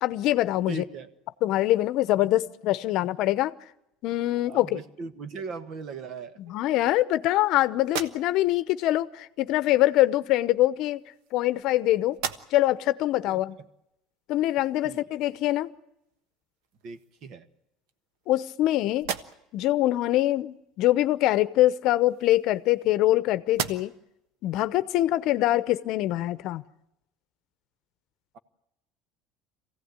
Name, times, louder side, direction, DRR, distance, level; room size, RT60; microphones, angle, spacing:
voice 1, 0.0-0.8 1.4-3.5 4.0-4.8 6.5-11.0 11.3-12.2 12.5-13.6 14.3-15.7 18.3-19.1 19.5-23.9 24.4-26.6, left 15 dB, 60° left, 14 dB, 0.8 m, -24 dB
voice 2, 0.7-1.1 4.5-6.5 13.3-13.4 14.8-15.0 16.8-17.4, right 4 dB, 50° right, 11 dB, 1.5 m, -38 dB
sound 1, 7.8-8.7 9.8-9.9 10.9-11.8 12.1-12.8 13.3-13.4 16.1-16.2 16.6-17.3 17.9-18.6 18.9-19.7 21.7-23.1 23.5-24.2, right 8 dB, 80° right, 1.3 m, -37 dB
23.5 x 16.5 x 9.7 m, 0.85 s
cardioid pair, 140°, 0 cm